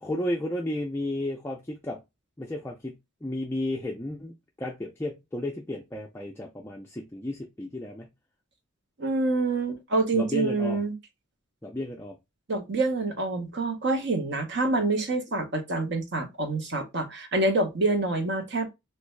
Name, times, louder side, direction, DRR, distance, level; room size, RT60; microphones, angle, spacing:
voice 1, 0.0-2.0 2.4-8.1 10.1-10.8 11.6-12.2, left 1 dB, 10° left, 0.3 m, -33 dB
voice 2, 9.0-10.9 12.5-18.7, right 2 dB, 50° right, 0.7 m, -26 dB
3.2 x 2.6 x 3.1 m
head